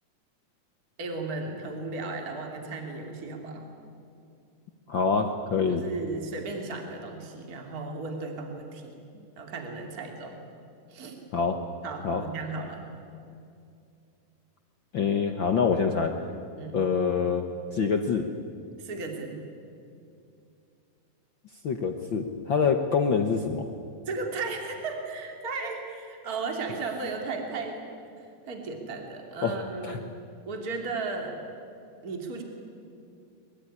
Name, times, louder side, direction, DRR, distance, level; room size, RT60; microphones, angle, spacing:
voice 1, 1.0-3.6 5.7-8.9 9.4-10.4 10.9-11.2 11.8-12.8 16.6-16.8 18.8-19.3 24.1-27.8 28.2-30.1 30.5-31.3 32.0-32.4, right 3 dB, 25° right, 3 dB, 3.1 m, -35 dB
voice 2, 4.9-5.8 11.3-11.6 12.0-12.2 14.9-16.2 16.7-17.5 17.7-18.3 21.6-23.7 29.4-29.6 29.8-30.0, left 5 dB, 70° left, 5 dB, 1.1 m, -25 dB
23.5 x 22.5 x 9.9 m, 2.5 s
omnidirectional pair, 3.9 m